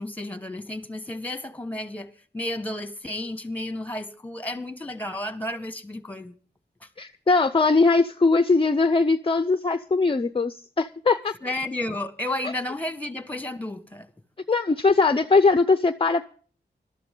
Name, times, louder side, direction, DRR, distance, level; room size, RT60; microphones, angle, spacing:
voice 1, 0.0-6.3 6.8-6.9 11.4-14.1, left 1 dB, 10° left, 1.7 m, -32 dB
voice 2, 7.0-11.3 14.5-16.3, left 3 dB, 30° left, 0.6 m, -20 dB
21.0 x 13.0 x 3.9 m
wide cardioid pair, 100°, 18 cm